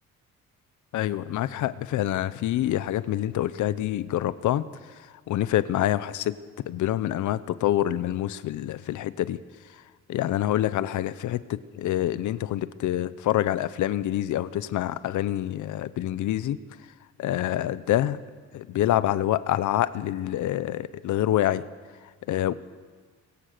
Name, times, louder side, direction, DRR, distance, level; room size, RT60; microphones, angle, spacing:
voice 1, 0.9-6.4 6.7-9.4 9.7-9.8 10.1-16.6 17.2-18.2 18.5-21.7 22.3-22.5, left 13 dB, 75° left, 15 dB, 0.9 m, -26 dB
23.0 x 22.5 x 6.7 m, 1.5 s
cardioid pair, 90°, 30 cm